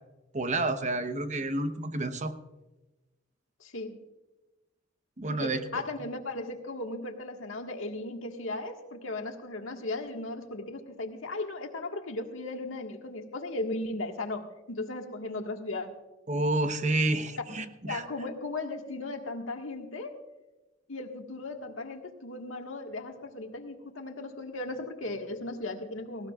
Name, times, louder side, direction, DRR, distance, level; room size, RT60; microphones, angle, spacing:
voice 1, 0.3-2.3 5.2-5.6 16.3-18.0, right 2 dB, 40° right, 9 dB, 0.9 m, -29 dB
voice 2, 3.6-4.0 5.3-15.9 17.8-20.2 20.9-26.3, left 2 dB, 80° left, 3 dB, 1.6 m, -36 dB
18.5 x 17.0 x 2.4 m, 1.1 s
head